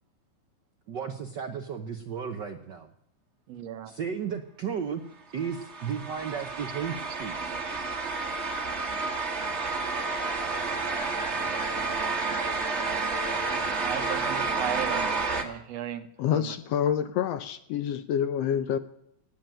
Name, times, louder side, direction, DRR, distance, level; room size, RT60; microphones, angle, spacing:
voice 1, 0.9-2.9 3.9-5.0 5.3-7.5, right 7 dB, 85° right, 6 dB, 0.9 m, -34 dB
voice 2, 3.5-3.9 7.4-8.0 13.4-16.5, right 11 dB, 65° right, 10 dB, 1.9 m, -37 dB
sound 1, 5.4-15.4, right 3 dB, 30° right, 1.4 m, -30 dB
voice 3, 16.2-18.8, left 9 dB, 70° left, 12 dB, 1.7 m, -27 dB
18.0 x 9.0 x 9.0 m, 0.76 s
omnidirectional pair, 3.4 m